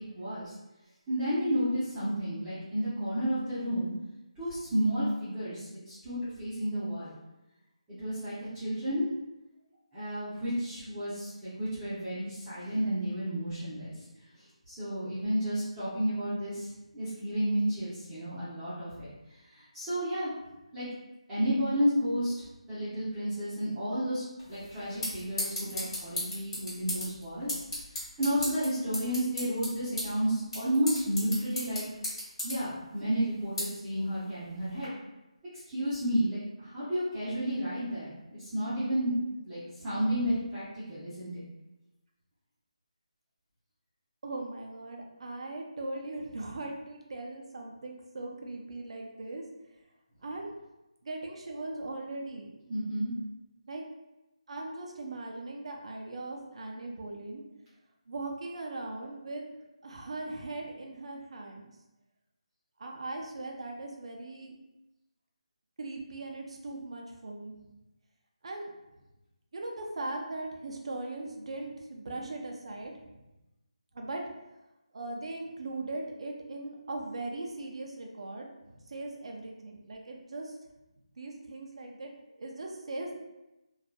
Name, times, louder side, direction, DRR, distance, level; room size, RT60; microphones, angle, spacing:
voice 1, 0.1-0.5 1.1-3.9 4.4-7.1 8.0-9.1 9.9-13.9 14.7-19.1 19.5-20.3 20.7-20.9 21.3-24.2 24.5-27.6 28.2-31.8 32.4-34.9 35.7-39.1 39.4-41.4 52.7-53.1, equal, 10° right, -16 dB, 0.7 m, -31 dB
sound 1, 24.4-34.9, left 1 dB, 45° left, 1.3 m, -38 dB
voice 2, 44.2-49.4 50.2-50.5 51.0-52.5 53.7-53.8 54.5-57.4 58.1-59.5 59.8-61.7 62.8-64.5 65.8-67.5 68.4-68.7 69.5-72.9 73.9-74.2 74.9-78.5 78.9-80.6 81.2-82.1 82.4-83.1, right 2 dB, 55° right, 1 dB, 0.5 m, -39 dB
2.7 x 2.3 x 2.2 m, 0.98 s
figure-of-eight pair, 170°, 4 cm